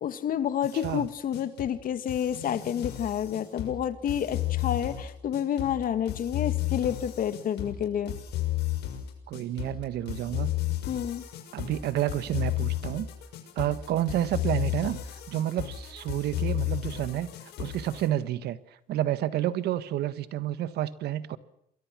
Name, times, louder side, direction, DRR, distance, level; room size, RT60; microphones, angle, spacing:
voice 1, 0.0-8.2 10.9-11.2, left 9 dB, 55° left, 11 dB, 2.1 m, -29 dB
sound 1, 0.6-18.1, left 14 dB, 80° left, 6.5 m, -33 dB
voice 2, 0.7-1.1 9.3-10.5 11.5-13.1 13.5-15.0 15.3-17.3 17.6-18.6 18.9-21.4, right 12 dB, 75° right, 14 dB, 1.6 m, -29 dB
28.0 x 22.5 x 6.2 m, 0.74 s
cardioid pair, 110°, 17 cm